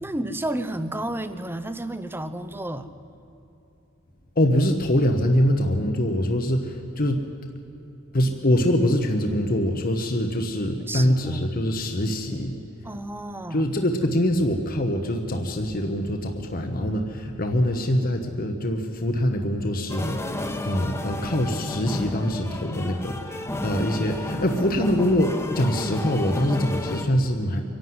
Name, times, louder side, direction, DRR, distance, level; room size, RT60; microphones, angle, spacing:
voice 1, 0.0-2.9 10.9-11.6 12.8-13.6, right 1 dB, 10° right, 11 dB, 0.8 m, -31 dB
voice 2, 4.4-7.2 8.1-12.6 13.5-20.4 20.6-27.6, equal, 45° left, 4 dB, 1.2 m, -24 dB
sound 1, 19.9-27.0, left 2 dB, 15° left, 1.2 m, -32 dB
24.5 x 11.5 x 9.5 m, 3.0 s
head